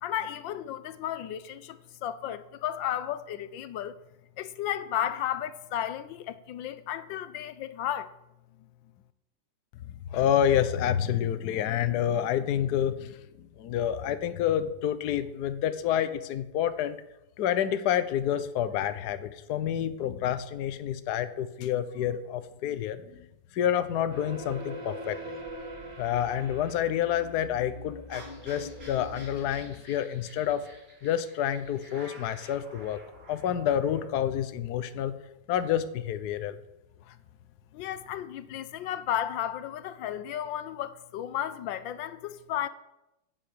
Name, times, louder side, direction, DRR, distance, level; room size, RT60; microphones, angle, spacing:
voice 1, 0.0-3.9 4.4-8.1 37.7-42.7, left 11 dB, 85° left, 1.5 m, -33 dB
voice 2, 10.1-17.0 17.4-23.0 23.5-25.2 26.0-30.7 31.0-33.0 33.3-35.1 35.5-36.6, left 10 dB, 65° left, 1.3 m, -28 dB
sound 1, 24.1-29.7, equal, 15° right, 1.7 m, -42 dB
sound 2, 28.1-34.1, right 1 dB, 50° right, 4.5 m, -51 dB
11.0 x 7.8 x 8.6 m
omnidirectional pair, 2.0 m